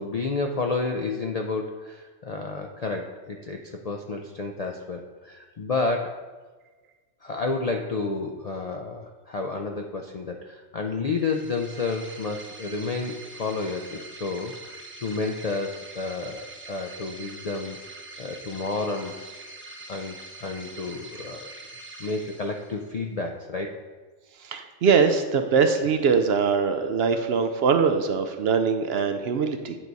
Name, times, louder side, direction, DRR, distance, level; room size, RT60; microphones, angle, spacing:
voice 1, 0.0-6.2 7.2-17.8 18.2-19.3 19.9-21.5 22.0-23.8, left 3 dB, 60° left, 3 dB, 0.4 m, -30 dB
sound 1, 11.1-23.0, right 3 dB, 15° right, 0.5 m, -44 dB
voice 2, 24.4-29.8, right 5 dB, 65° right, 7 dB, 0.7 m, -22 dB
9.1 x 4.7 x 4.0 m, 1.4 s
omnidirectional pair, 1.3 m